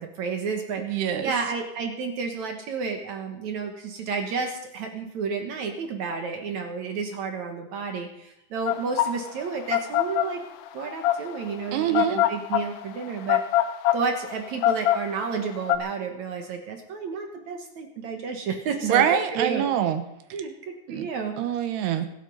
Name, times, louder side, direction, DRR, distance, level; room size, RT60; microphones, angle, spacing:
voice 1, 0.0-10.4 10.7-13.6 13.9-19.7 20.3-21.3, right 5 dB, 60° right, 4 dB, 2.2 m, -31 dB
voice 2, 0.8-1.3 11.7-12.2 18.8-20.0 20.9-21.1 21.4-22.1, right 9 dB, 85° right, 8 dB, 3.1 m, -24 dB
sound 1, 8.7-15.8, left 12 dB, 80° left, 1.8 m, -24 dB
24.5 x 8.4 x 5.5 m, 0.84 s
omnidirectional pair, 4.6 m